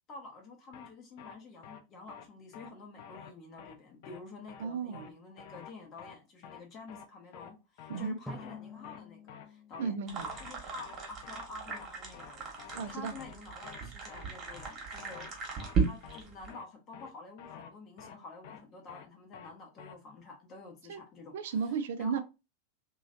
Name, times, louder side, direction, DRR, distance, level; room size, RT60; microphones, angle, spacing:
voice 1, 0.1-10.0 10.4-15.3 15.5-22.2, left 3 dB, 30° left, 0.8 m, -49 dB
sound 1, 0.7-0.9 1.2-1.4 1.6-1.8 2.1-2.3 2.5-2.7 3.0-3.3 3.6-3.8 4.0-4.2 4.5-4.7 4.9-5.1 5.4-5.7 6.0-6.2 6.4-6.6 6.9-7.1 7.3-7.5 7.8-8.1 8.4-8.6 8.8-9.0 9.3-9.5 9.7-9.9 10.2-10.5 10.8-11.0 11.2-11.4 11.7-11.9 12.1-12.3 12.6-12.9 13.2-13.4 13.6-13.8 14.1-14.3 14.5-14.7 15.0-15.3 15.6-15.8 16.0-16.2 16.5-16.7 16.9-17.1 17.4-17.7 18.0-18.2 18.4-18.6 18.9-19.1 19.3-19.5 19.8-19.9, left 8 dB, 50° left, 0.4 m, -49 dB
voice 2, 4.6-5.1 7.9-8.2 9.8-10.3 12.7-13.1 20.9-21.0 21.3-22.2, right 6 dB, 55° right, 0.5 m, -34 dB
Drum, 8.3-11.2, left 2 dB, ahead, 0.6 m, -49 dB
sound 2, 10.1-16.5, right 5 dB, 30° right, 1.2 m, -36 dB
3.0 x 2.7 x 2.6 m
figure-of-eight pair, 90°, 0 cm